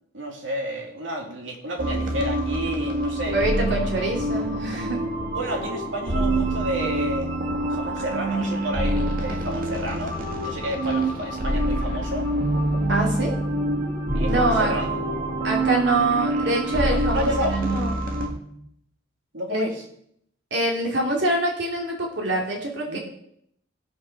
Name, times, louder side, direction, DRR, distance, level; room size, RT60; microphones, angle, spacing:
voice 1, 0.1-3.4 5.3-7.3 7.7-12.3 14.1-15.0 16.9-17.6 19.3-19.9 22.9-23.0, equal, 85° right, 2 dB, 2.5 m, -31 dB
sound 1, 1.8-18.3, right 1 dB, 50° right, 1.9 m, -26 dB
voice 2, 3.2-5.0 12.9-13.3 14.2-14.7 15.4-17.9 19.5-19.7 20.5-23.0, right 2 dB, 65° right, 0 dB, 2.8 m, -25 dB
sound 2, 12.4-18.7, right 1 dB, 20° right, 2.3 m, -32 dB
16.5 x 5.6 x 6.0 m, 0.71 s
head